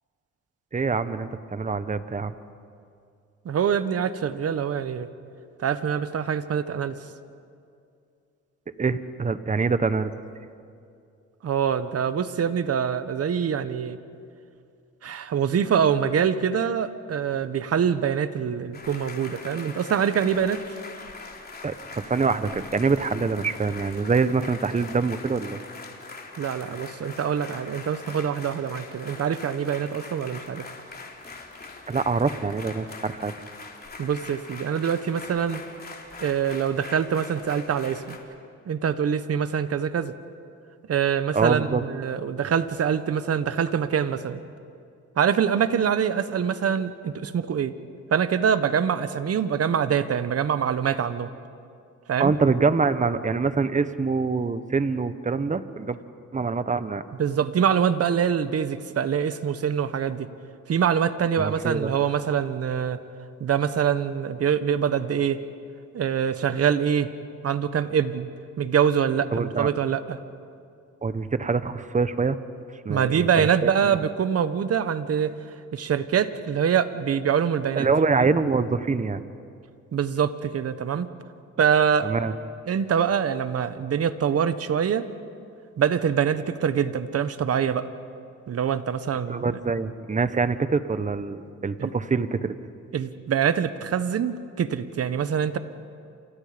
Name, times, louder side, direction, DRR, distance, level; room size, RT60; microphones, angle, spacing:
voice 1, 0.7-2.3 8.8-10.1 21.6-25.6 31.9-33.3 41.3-41.8 52.2-56.0 56.3-57.0 61.4-61.9 69.3-69.7 71.0-72.4 72.8-73.7 77.8-79.2 82.0-82.3 89.3-92.5, right 4 dB, 25° right, 12 dB, 1.2 m, -25 dB
voice 2, 3.4-5.1 5.6-7.0 11.4-14.0 15.0-20.6 26.4-30.7 34.0-35.6 36.2-38.2 38.7-40.1 40.9-44.4 45.2-47.7 48.1-51.3 52.1-52.3 57.2-60.3 60.7-63.0 63.4-65.4 65.9-67.1 67.4-68.3 68.6-70.2 72.9-75.3 75.7-77.9 79.9-81.1 81.6-82.1 82.7-85.1 85.8-87.9 88.5-89.6 91.8-91.9 92.9-95.6, right 8 dB, 50° right, 12 dB, 1.4 m, -24 dB
sound 1, 18.7-38.2, left 3 dB, 30° left, 3.7 m, -42 dB
29.5 x 27.5 x 5.3 m, 2.4 s
cardioid pair, 90°, 30 cm